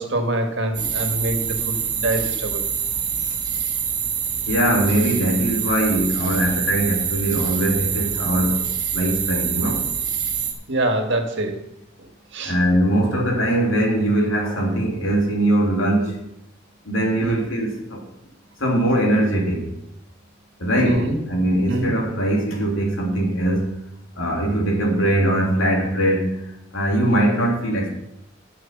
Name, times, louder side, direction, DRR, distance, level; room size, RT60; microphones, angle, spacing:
voice 1, 0.0-2.6 10.7-11.6 12.3-12.6 17.2-17.5 20.8-21.2 21.7-21.9, right 1 dB, 65° right, 5 dB, 1.8 m, -25 dB
sound 1, 0.7-10.5, right 7 dB, 40° right, 1.7 m, -25 dB
voice 2, 4.5-8.7 8.9-9.8 12.4-16.1 16.8-18.0 18.6-19.7 20.6-23.7 24.2-26.4 26.7-27.9, right 1 dB, 85° left, -1 dB, 3.2 m, -21 dB
12.5 x 6.8 x 6.0 m, 0.82 s
head